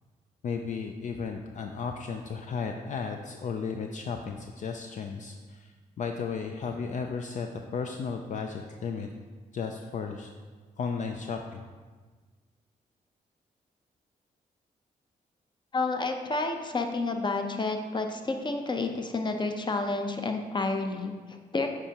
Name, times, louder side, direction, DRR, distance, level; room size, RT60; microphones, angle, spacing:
voice 1, 0.4-5.7 6.0-9.1 9.5-10.3 10.8-11.6, left 5 dB, 55° left, 4 dB, 0.4 m, -34 dB
voice 2, 15.7-21.7, left 3 dB, 30° left, 5 dB, 0.7 m, -30 dB
8.7 x 4.8 x 2.9 m, 1.4 s
cardioid pair, 75°, 15 cm